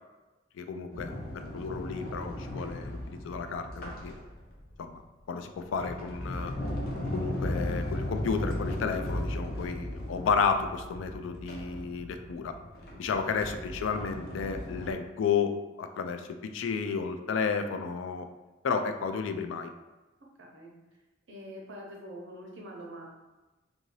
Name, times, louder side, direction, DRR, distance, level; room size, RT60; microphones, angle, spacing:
voice 1, 0.6-4.1 4.8-5.0 5.3-6.5 7.1-12.6 13.0-18.3 18.6-19.7, left 5 dB, 90° left, 7 dB, 0.3 m, -32 dB
Sliding door, 0.9-4.7 5.4-14.9, left 1 dB, 55° left, 0.6 m, -36 dB
voice 2, 20.4-20.7 21.3-23.1, equal, 80° right, -2 dB, 0.8 m, -45 dB
2.7 x 2.6 x 3.1 m, 1.1 s
head